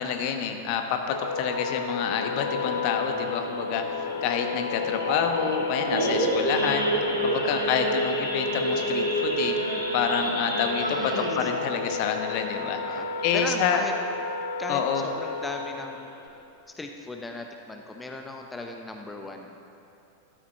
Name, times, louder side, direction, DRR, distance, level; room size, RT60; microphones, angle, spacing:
voice 1, 0.0-3.8 4.2-6.9 7.2-9.6 9.9-12.8 13.2-13.8 14.7-15.0, left 7 dB, 45° left, 5 dB, 1.2 m, -28 dB
Wind instrument woodwind instrument, 1.1-16.0, left 5 dB, 65° left, 0.9 m, -33 dB
Idling / Accelerating revving vroom / Sawing, 2.4-13.5 13.8-14.1 14.3-14.4 14.9-15.1 15.6-15.7 15.9-16.3, right 1 dB, 85° right, 2.2 m, -30 dB
voice 2, 10.8-11.5 12.8-13.1 13.3-13.9 14.6-16.1 16.7-19.7, left 2 dB, 10° left, 3 dB, 0.8 m, -37 dB
13.5 x 12.5 x 4.5 m, 2.7 s
figure-of-eight pair, 90°, 0 cm